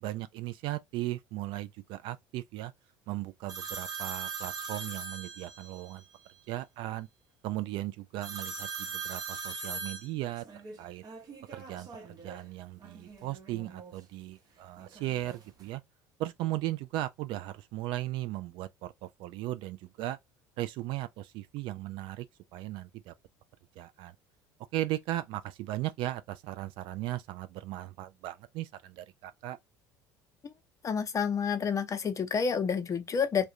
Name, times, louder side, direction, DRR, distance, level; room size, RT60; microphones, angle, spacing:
voice 1, 0.0-2.7 3.1-6.0 6.5-7.1 7.4-10.5 10.8-11.0 11.5-15.8 16.2-20.2 20.6-22.3 22.5-23.1 23.8-24.2 24.7-29.6, right 15 dB, 60° right, 0.4 m, -37 dB
sound 1, 3.5-5.9 8.2-12.4 12.8-13.9 14.8-15.7, right 5 dB, 45° right, 0.8 m, -41 dB
voice 2, 30.8-33.4, left 6 dB, 35° left, 0.7 m, -29 dB
2.3 x 2.2 x 2.8 m
hypercardioid pair, 70°, 10 cm